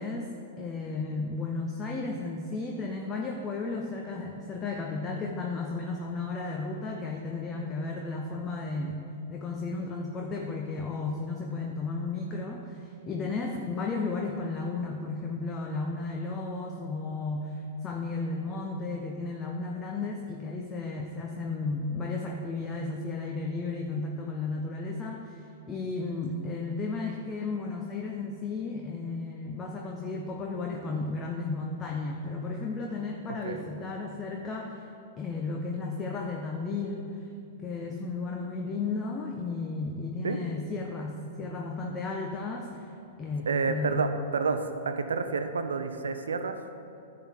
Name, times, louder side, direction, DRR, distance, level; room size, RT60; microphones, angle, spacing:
voice 1, 0.0-9.0 9.3-34.9 35.2-37.2 37.6-42.9 43.2-44.1, left 3 dB, 25° left, 1 dB, 0.7 m, -34 dB
voice 2, 43.5-46.6, right 4 dB, 80° right, 8 dB, 0.6 m, -29 dB
10.0 x 3.8 x 7.3 m, 2.7 s
hypercardioid pair, 110°, 0 cm